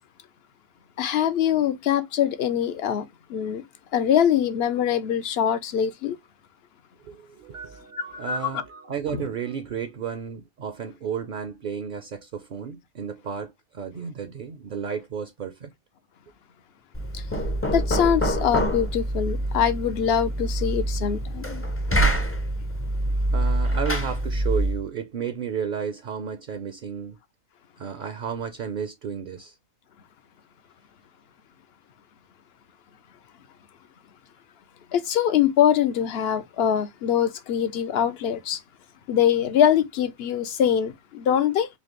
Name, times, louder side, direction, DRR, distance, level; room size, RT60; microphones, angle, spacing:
voice 1, 1.0-3.6 3.9-6.2 8.1-8.6 9.1-9.2 17.7-21.6 34.9-38.6 39.1-41.7, left 9 dB, 65° left, 0.8 m, -23 dB
voice 2, 7.0-15.7 23.3-27.2 27.8-29.6, right 7 dB, 55° right, 0.6 m, -33 dB
Knock, 16.9-24.8, right 1 dB, 15° left, 0.5 m, -25 dB
4.2 x 2.8 x 2.9 m
omnidirectional pair, 1.2 m